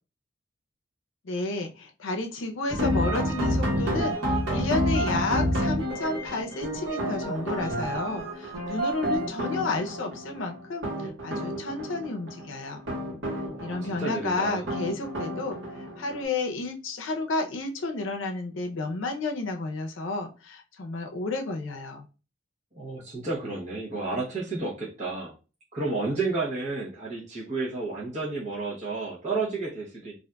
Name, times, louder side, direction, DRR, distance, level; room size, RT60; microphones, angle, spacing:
voice 1, 1.2-12.8 13.6-22.1, left 3 dB, 75° left, 4 dB, 0.6 m, -31 dB
sound 1, 2.7-16.2, equal, 80° right, 1.2 m, -29 dB
voice 2, 13.5-14.7 22.7-25.3 25.7-30.1, right 3 dB, 35° right, -7 dB, 0.8 m, -31 dB
3.8 x 2.5 x 2.2 m, 0.32 s
head